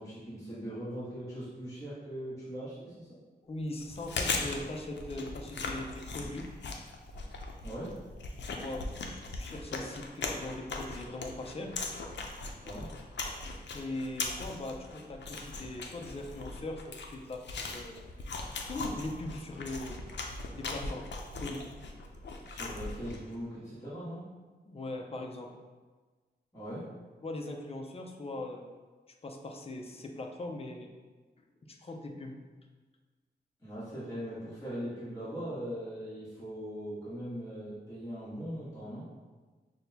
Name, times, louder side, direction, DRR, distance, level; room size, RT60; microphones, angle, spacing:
voice 1, 0.0-3.1 7.6-8.0 12.6-12.9 22.5-24.2 26.5-26.9 33.6-39.1, equal, 20° left, -11 dB, 1.4 m, -40 dB
voice 2, 3.4-6.5 8.5-8.8 9.1-11.9 13.7-17.9 18.6-20.0 20.5-21.6 24.7-25.5 27.2-28.7 29.2-30.9 31.6-32.4, left 2 dB, 35° left, 2 dB, 0.5 m, -40 dB
Chewing mastication, 3.8-23.3, left 3 dB, 85° left, 0.5 m, -39 dB
6.2 x 2.2 x 2.7 m, 1.4 s
wide cardioid pair, 145°, 18 cm